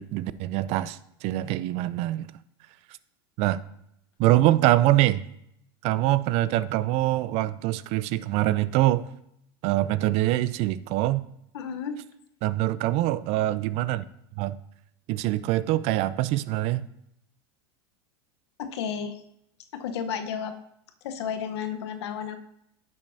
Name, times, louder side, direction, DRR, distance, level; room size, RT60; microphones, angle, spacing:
voice 1, 0.0-2.3 3.4-3.6 4.2-5.2 5.8-9.1 9.6-11.3 12.4-14.1 14.4-14.6 15.1-16.9, right 15 dB, 50° right, 17 dB, 0.4 m, -24 dB
voice 2, 11.5-12.0 18.6-19.2 19.7-20.5 21.0-22.4, left 7 dB, 80° left, 7 dB, 0.9 m, -32 dB
9.9 x 7.4 x 2.6 m, 0.75 s
supercardioid pair, 125°, 14 cm